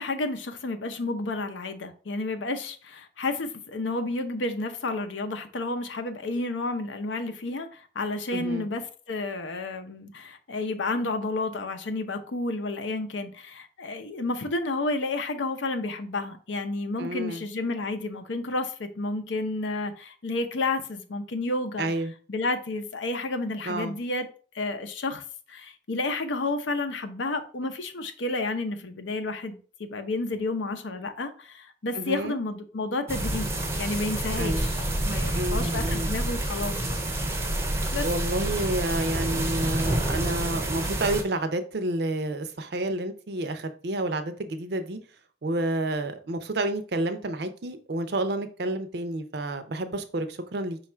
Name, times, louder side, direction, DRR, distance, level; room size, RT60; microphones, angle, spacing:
voice 1, 0.0-21.9 22.3-24.3 24.5-25.2 25.5-34.8 35.0-37.0 37.9-38.1, left 2 dB, 75° left, 0.6 m, -31 dB
voice 2, 8.3-8.7 17.0-17.4 21.8-22.1 23.6-24.0 31.9-32.4 34.4-34.7 35.3-36.1 38.0-45.0 45.4-50.8, right 1 dB, 60° right, 0.5 m, -30 dB
sound 1, 33.1-41.2, right 1 dB, 15° right, 0.6 m, -28 dB
5.2 x 2.4 x 4.3 m
head